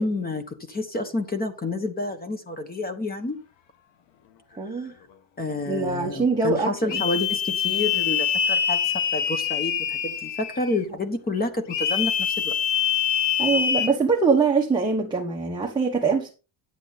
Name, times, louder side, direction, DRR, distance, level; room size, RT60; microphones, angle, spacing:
voice 1, 0.0-3.4 4.7-4.9 5.4-12.6, left 2 dB, 20° left, 9 dB, 1.1 m, -29 dB
voice 2, 4.6-4.9 5.7-7.0 13.4-16.3, right 4 dB, 10° right, -1 dB, 1.2 m, -23 dB
sound 1, 6.9-10.8 11.7-13.9, left 9 dB, 85° left, 1.4 m, -25 dB
10.0 x 7.9 x 4.0 m, 0.33 s
cardioid pair, 170°, 43 cm